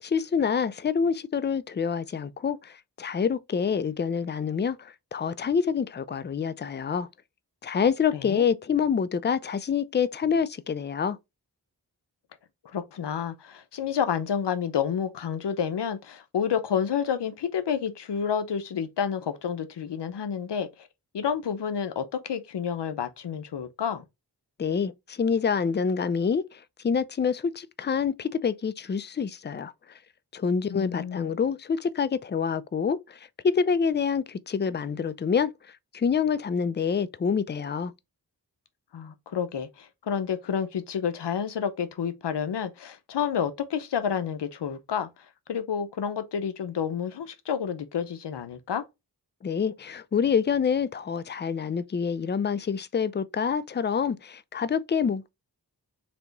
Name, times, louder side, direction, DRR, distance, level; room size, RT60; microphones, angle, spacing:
voice 1, 0.0-7.1 7.6-11.2 24.6-30.0 30.3-37.9 49.4-55.3, left 6 dB, 30° left, 0.4 m, -27 dB
voice 2, 8.1-8.4 12.6-20.9 21.1-24.0 30.7-31.3 38.9-45.1 45.5-48.8, left 7 dB, 90° left, 0.7 m, -29 dB
3.4 x 2.9 x 3.9 m
cardioid pair, 40°, 41 cm